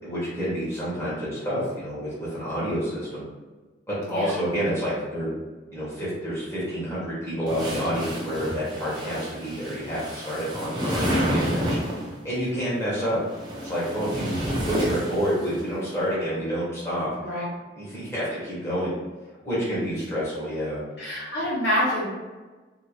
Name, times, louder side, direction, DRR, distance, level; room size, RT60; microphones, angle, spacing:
voice 1, 0.0-3.3 3.9-5.3 5.7-11.9 12.2-13.2 13.6-14.4 14.7-17.1 17.7-18.9 19.4-20.8, equal, 15° left, -10 dB, 1.1 m, -28 dB
voice 2, 4.0-4.4 17.2-17.4 21.0-22.1, equal, 60° left, -7 dB, 1.1 m, -26 dB
sound 1, 7.5-12.1 13.1-15.6, equal, 25° right, 0.6 m, -29 dB
2.9 x 2.7 x 3.0 m, 1.3 s
head